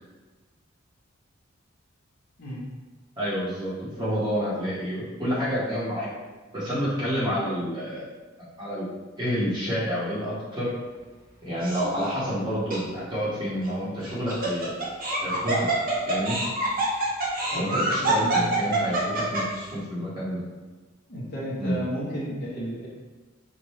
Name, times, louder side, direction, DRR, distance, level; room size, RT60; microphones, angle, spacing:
voice 1, 3.2-6.1 6.5-8.0 8.6-8.9 9.2-10.7 11.4-14.7 15.2-15.7 16.1-16.4 17.5-20.4 21.6-21.8, equal, 25° right, -10 dB, 1.4 m, -29 dB
Laughter, 11.6-12.1 12.7-12.8 14.0-19.6, right 2 dB, 45° right, 0.8 m, -26 dB
voice 2, 17.5-18.7 21.1-22.9, equal, 50° left, -6 dB, 1.1 m, -33 dB
5.2 x 2.6 x 3.1 m, 1.3 s
head